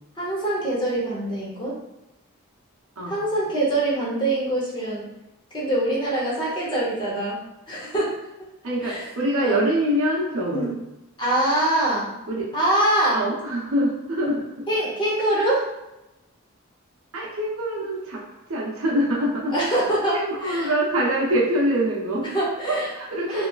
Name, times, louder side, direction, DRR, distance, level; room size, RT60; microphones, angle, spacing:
voice 1, 0.2-1.8 3.1-5.1 5.5-7.4 7.7-8.2 8.8-9.0 9.4-9.6 10.5-10.7 11.2-12.1 12.5-13.2 14.7-15.6 19.5-20.7 22.3-22.9 23.3-23.5, right 1 dB, 20° left, -6 dB, 0.7 m, -24 dB
voice 2, 8.6-10.7 12.3-12.5 13.1-14.7 17.1-18.2 18.5-19.6 20.1-22.3 22.6-23.5, right 1 dB, 70° right, -4 dB, 0.8 m, -24 dB
2.8 x 2.4 x 2.3 m, 0.94 s
head